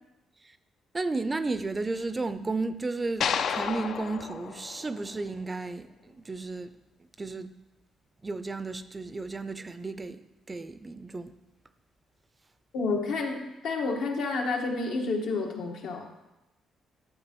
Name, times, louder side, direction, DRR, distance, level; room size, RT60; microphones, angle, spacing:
voice 1, 0.9-6.7 7.2-7.5 8.2-11.4, right 3 dB, 25° right, 0.5 m, -33 dB
sound 1, 3.2-5.6, left 7 dB, 65° left, 0.5 m, -32 dB
voice 2, 12.7-16.1, left 3 dB, 85° left, 1.5 m, -30 dB
12.0 x 7.2 x 3.1 m
cardioid pair, 90°, 0 cm